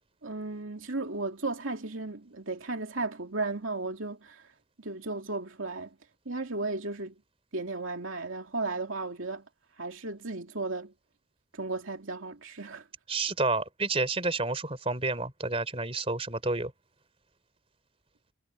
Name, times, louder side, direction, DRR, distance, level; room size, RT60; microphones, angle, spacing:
voice 1, 0.2-4.4 4.8-6.0 6.3-7.1 7.5-9.4 9.8-10.9 11.5-12.9, right 3 dB, 90° right, 2.6 m, -35 dB
voice 2, 13.1-16.7, right 3 dB, 30° right, 3.9 m, -30 dB
head